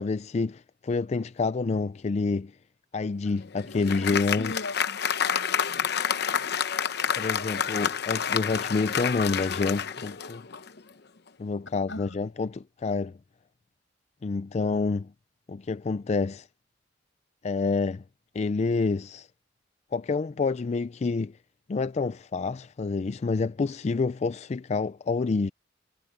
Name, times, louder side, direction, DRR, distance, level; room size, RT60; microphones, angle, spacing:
voice 1, 0.0-2.6 2.9-4.5 7.2-10.5 11.4-13.2 14.2-15.1 15.5-16.5 17.4-18.0 18.3-19.3 19.9-21.4 21.7-25.5, left 4 dB, 35° left, 0.4 m, -28 dB
Applause, 3.3-10.8, left 7 dB, 60° left, 0.8 m, -29 dB
voice 2, 4.1-5.9 11.9-12.3, left 2 dB, 85° left, 6.4 m, -40 dB
head